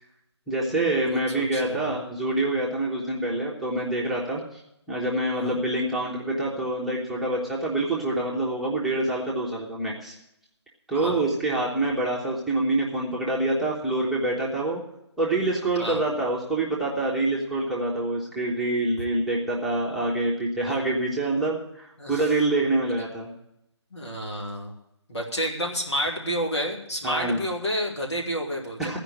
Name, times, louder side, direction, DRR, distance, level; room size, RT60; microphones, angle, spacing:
voice 1, 0.5-4.6 4.9-10.1 10.9-14.8 15.2-23.3 27.0-27.5 28.8-29.0, right 2 dB, ahead, -6 dB, 1.1 m, -26 dB
voice 2, 1.4-1.8 5.3-5.6 11.0-11.3 15.8-16.0 22.0-22.2 23.9-24.7 25.1-29.0, equal, 75° left, 0 dB, 2.7 m, -30 dB
14.5 x 5.1 x 9.4 m, 0.82 s
figure-of-eight pair, 145°, 15 cm